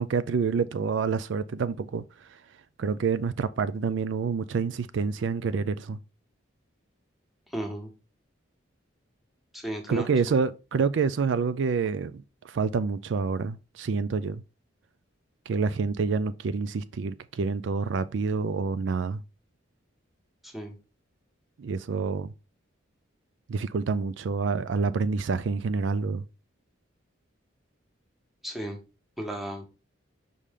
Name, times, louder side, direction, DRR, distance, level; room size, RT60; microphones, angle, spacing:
voice 1, 0.0-2.4 2.8-6.0 9.9-14.4 15.5-19.2 21.6-22.3 23.5-26.2, right 5 dB, 65° right, 0.4 m, -28 dB
voice 2, 7.5-7.9 9.5-10.2 20.4-20.7 28.4-28.8 29.2-29.6, right 1 dB, ahead, 1.3 m, -34 dB
5.5 x 5.0 x 3.6 m
head